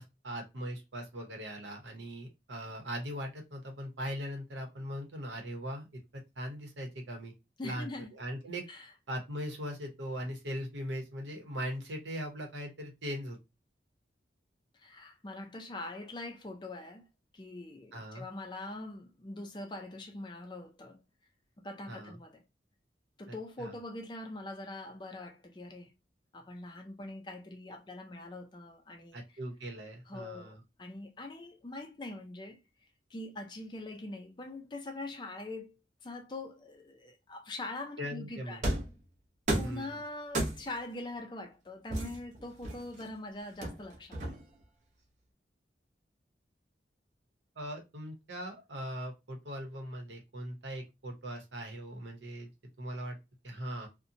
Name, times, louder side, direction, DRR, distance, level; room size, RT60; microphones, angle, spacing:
voice 1, 0.0-5.9 6.1-7.3 7.6-8.7 9.1-13.4 17.9-18.2 21.9-22.2 23.3-23.8 29.1-30.6 38.0-38.6 39.6-40.0 47.6-52.5 52.8-53.2 53.4-53.9, equal, 90° right, 0.8 m, -40 dB
voice 2, 7.6-8.1 8.7-8.9 14.8-17.1 17.3-21.0 21.6-22.4 23.2-25.9 26.3-29.2 30.1-32.6 33.1-35.7 36.0-38.6 39.6-44.3, left 2 dB, 25° left, 0.4 m, -43 dB
sound 1, 38.6-39.0 39.5-39.8 40.3-40.8 41.9-43.0 43.6-44.6, right 1 dB, 45° right, 0.6 m, -33 dB
2.7 x 2.1 x 2.5 m
head